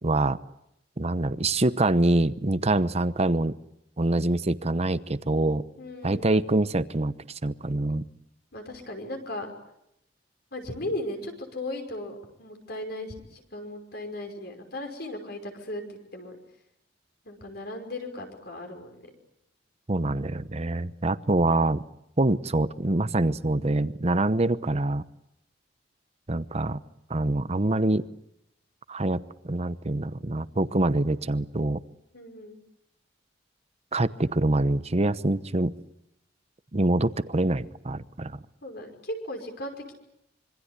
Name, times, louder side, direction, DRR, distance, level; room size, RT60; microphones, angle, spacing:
voice 1, 0.0-0.4 1.0-3.5 4.0-5.6 6.0-7.1 7.4-8.0 19.9-21.8 22.2-25.0 26.3-26.8 27.1-28.1 28.9-31.8 33.9-35.7 36.7-38.4, right 2 dB, 35° right, 14 dB, 0.9 m, -25 dB
voice 2, 5.8-6.3 8.5-9.5 10.5-16.4 17.2-19.1 32.1-32.6 38.6-39.9, left 1 dB, 60° left, 4 dB, 5.6 m, -37 dB
26.5 x 24.0 x 8.3 m, 0.80 s
head